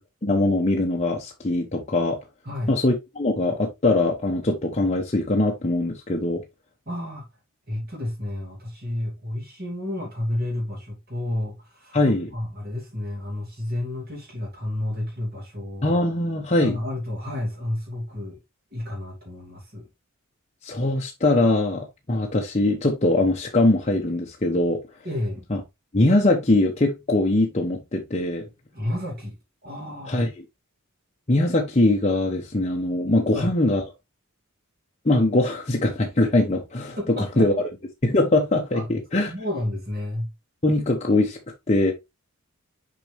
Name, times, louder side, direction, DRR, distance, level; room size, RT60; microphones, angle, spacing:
voice 1, 0.2-2.2 2.7-6.4 11.9-12.3 15.8-16.8 20.6-24.8 25.5-25.6 25.9-28.4 30.1-30.3 31.3-33.8 35.0-37.5 38.0-39.3 40.6-41.4 41.7-41.9, left 2 dB, 30° left, 0.9 m, -22 dB
voice 2, 6.9-7.3 7.7-16.0 16.6-18.4 18.7-19.9 25.0-25.4 28.7-29.4 29.6-30.2 33.3-33.5 37.0-37.5 38.7-38.9 39.3-40.3, left 1 dB, 45° right, 2.6 m, -31 dB
6.7 x 4.3 x 3.3 m
head